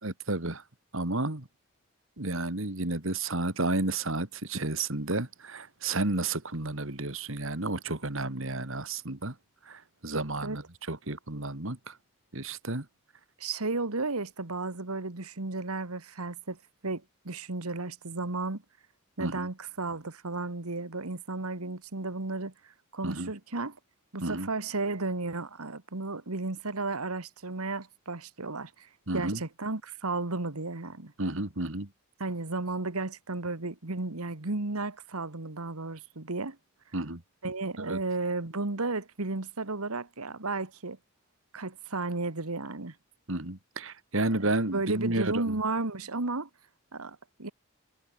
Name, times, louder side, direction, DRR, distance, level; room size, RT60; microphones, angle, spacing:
voice 1, 0.0-0.6 0.9-1.5 2.2-9.4 9.7-12.0 12.3-12.9 19.2-19.5 23.0-23.3 24.2-24.5 29.1-29.4 31.2-31.9 36.9-37.2 37.8-38.0 43.3-45.6, right 2 dB, 60° right, 2.3 m, -32 dB
voice 2, 13.4-18.6 19.2-23.8 24.1-31.1 32.2-36.6 37.4-41.0 41.5-43.0 44.7-46.5 46.9-47.5, right 3 dB, 80° right, 1.8 m, -33 dB
head